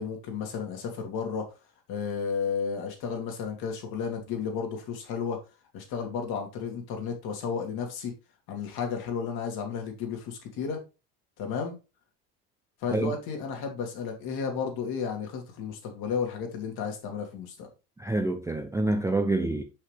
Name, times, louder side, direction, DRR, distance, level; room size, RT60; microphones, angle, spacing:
voice 1, 0.0-1.5 1.9-5.4 5.7-8.1 8.5-10.8 11.4-11.8 12.8-17.7, left 6 dB, 50° left, 2.5 m, -33 dB
voice 2, 18.0-19.6, right 2 dB, 5° right, 0.6 m, -27 dB
5.9 x 5.6 x 3.4 m
hypercardioid pair, 85°, 49 cm